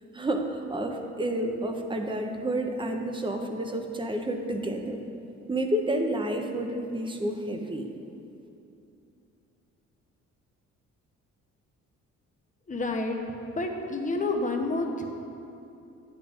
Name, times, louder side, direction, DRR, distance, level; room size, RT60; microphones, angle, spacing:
voice 1, 0.1-5.0 5.5-7.9, right 1 dB, 15° right, 4 dB, 0.7 m, -30 dB
voice 2, 12.7-13.2 13.5-15.0, left 2 dB, 25° left, 3 dB, 0.8 m, -29 dB
9.6 x 8.2 x 2.5 m, 2.8 s
cardioid pair, 90°, 30 cm